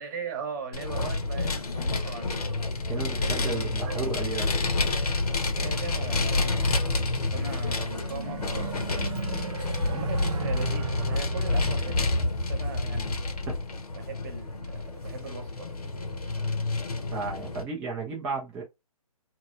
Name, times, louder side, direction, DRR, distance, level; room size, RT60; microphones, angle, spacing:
voice 1, 0.0-2.5 3.2-4.1 5.5-8.8 9.1-9.2 9.9-13.2 13.9-15.7, right 5 dB, 30° right, 1.0 m, -39 dB
Vehicle, 0.7-17.6, left 2 dB, 80° left, 1.0 m, -29 dB
voice 2, 2.9-4.5 13.5-13.6 17.1-18.6, right 4 dB, 5° right, 0.4 m, -33 dB
sound 1, 7.6-13.0, right 7 dB, 60° right, 0.6 m, -38 dB
3.0 x 2.9 x 2.4 m
hypercardioid pair, 155°, 19 cm